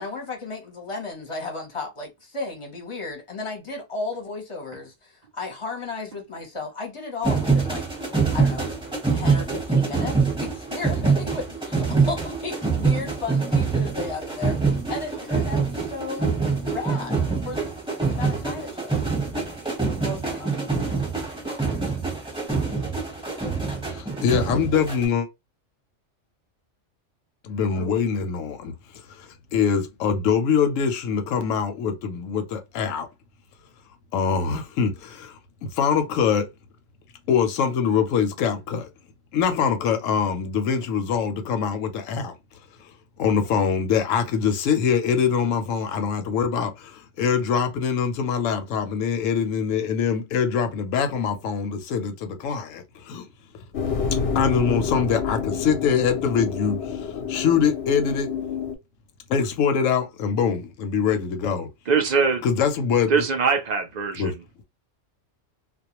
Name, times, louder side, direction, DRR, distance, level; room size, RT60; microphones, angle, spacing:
voice 1, 0.0-7.9 8.3-8.7 9.1-16.3 16.7-17.6 18.0-19.0 19.3-20.7 27.7-28.0, left 3 dB, 30° left, 0.7 m, -34 dB
sound 1, 7.2-25.0, right 4 dB, 5° right, 0.7 m, -25 dB
voice 2, 23.9-25.3 27.4-28.7 29.1-33.1 34.1-36.5 37.3-38.9 39.3-42.3 43.2-53.3 54.3-58.3 59.3-61.7 62.4-63.1 64.2-64.3, left 6 dB, 85° left, 0.9 m, -24 dB
sound 2, 53.7-58.8, left 6 dB, 60° left, 0.7 m, -28 dB
voice 3, 61.9-62.4 63.1-64.4, right 5 dB, 70° right, 0.4 m, -22 dB
2.3 x 2.1 x 2.9 m
omnidirectional pair, 1.3 m